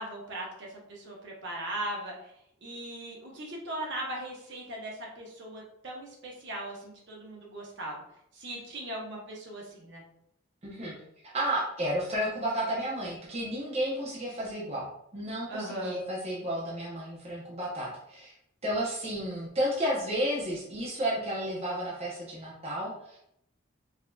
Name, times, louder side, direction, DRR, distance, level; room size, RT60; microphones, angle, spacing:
voice 1, 0.0-2.3 2.6-8.0 8.3-10.0 15.5-16.0, right 1 dB, 55° right, -2 dB, 1.0 m, -39 dB
voice 2, 10.6-10.9 11.3-14.9 15.1-18.3 18.6-23.2, equal, 30° right, -6 dB, 0.7 m, -32 dB
4.9 x 2.6 x 2.3 m, 0.75 s
head